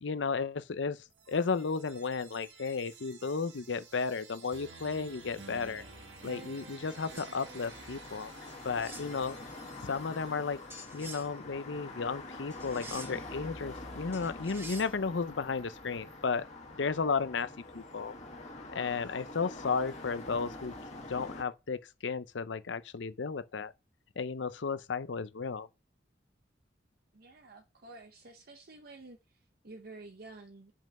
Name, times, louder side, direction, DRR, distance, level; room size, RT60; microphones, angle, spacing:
voice 1, 0.0-5.8 6.2-8.3 8.6-9.4 9.8-10.6 10.9-16.5 16.8-18.1 18.7-20.7 21.1-23.7 24.2-25.7, left 5 dB, 75° left, 0.6 m, -34 dB
sound 1, 1.1-11.0, right 5 dB, 80° right, 1.5 m, -52 dB
sound 2, 4.8-21.4, left 2 dB, 40° left, 2.0 m, -46 dB
sound 3, 7.2-7.3 8.5-9.1 10.7-11.3 12.5-13.3 14.1-14.9, right 2 dB, 15° right, 1.6 m, -47 dB
voice 2, 27.1-30.7, right 2 dB, 55° right, 0.8 m, -51 dB
5.5 x 5.4 x 6.1 m
head